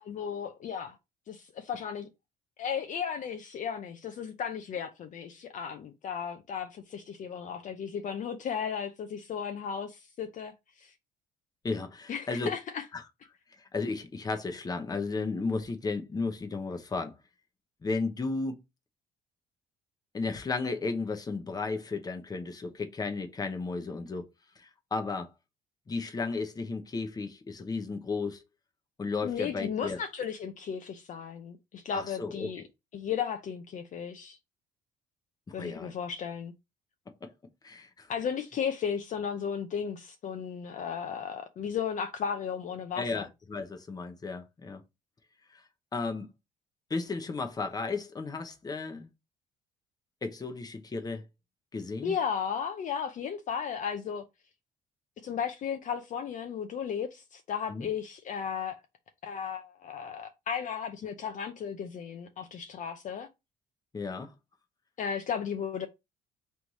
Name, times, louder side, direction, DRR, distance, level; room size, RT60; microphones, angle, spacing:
voice 1, 0.0-1.0 1.3-2.1 2.6-10.5 10.8-10.9 12.1-12.9 29.2-32.6 32.9-34.4 35.5-36.5 38.1-43.2 52.0-54.2 55.2-58.8 59.2-63.3 65.0-65.9, left 7 dB, 50° left, 0.6 m, -35 dB
voice 2, 11.6-12.5 12.9-13.0 13.6-17.1 17.8-18.6 20.1-24.2 24.6-25.3 25.9-28.4 29.0-30.0 31.9-32.5 35.5-35.9 37.6-38.1 42.9-44.8 45.5-45.6 45.9-46.3 46.9-49.1 50.2-51.2 51.7-52.1 57.7-57.9 63.9-64.3, left 4 dB, 20° left, 0.9 m, -34 dB
3.4 x 3.2 x 4.0 m
cardioid pair, 110°, 17 cm